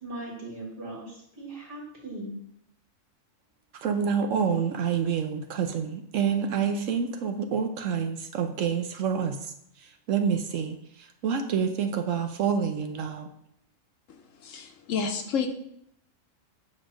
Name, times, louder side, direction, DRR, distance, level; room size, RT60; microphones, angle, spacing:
voice 1, 0.0-2.4, right 1 dB, 45° right, -4 dB, 2.3 m, -39 dB
voice 2, 3.7-9.4 9.8-13.3, right 7 dB, 75° right, 5 dB, 1.0 m, -28 dB
voice 3, 14.4-15.5, left 6 dB, 75° left, 5 dB, 1.2 m, -29 dB
8.7 x 3.2 x 6.1 m, 0.72 s
omnidirectional pair, 1.4 m